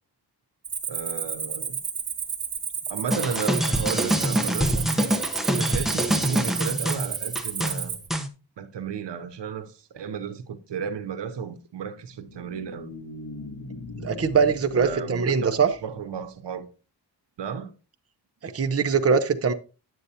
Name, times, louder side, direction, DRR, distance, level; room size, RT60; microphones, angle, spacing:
Cricket, 0.6-8.1, right 7 dB, 55° right, 1.4 m, -32 dB
voice 1, 0.9-1.8 2.9-4.9 5.5-8.0 8.6-12.9 14.7-16.7 17.4-17.7, right 6 dB, 90° right, 0.9 m, -33 dB
sound 1, 3.1-8.3, equal, ahead, 0.9 m, -25 dB
sound 2, 11.9-16.4, left 2 dB, 50° left, 2.0 m, -41 dB
voice 2, 14.0-15.7 18.4-19.5, right 6 dB, 35° right, 0.7 m, -22 dB
9.5 x 7.7 x 2.8 m
wide cardioid pair, 125°, 41 cm